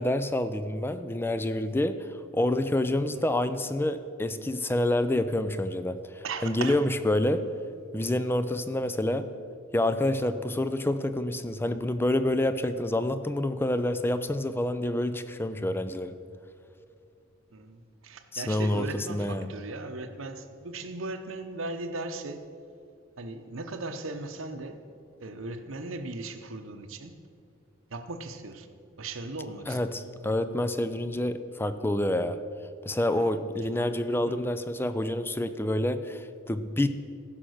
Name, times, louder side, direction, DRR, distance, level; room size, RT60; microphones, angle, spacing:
voice 1, 0.0-7.4 7.9-9.2 9.7-16.1 18.3-19.5 29.7-32.4 32.8-36.9, left 1 dB, 10° left, 11 dB, 0.4 m, -28 dB
voice 2, 6.2-6.9 17.5-22.5 23.2-24.8 25.2-27.2 27.9-28.7 29.0-29.8 33.1-33.3 34.3-34.4, right 2 dB, 70° right, 7 dB, 0.9 m, -37 dB
14.5 x 5.9 x 6.4 m, 2.4 s
head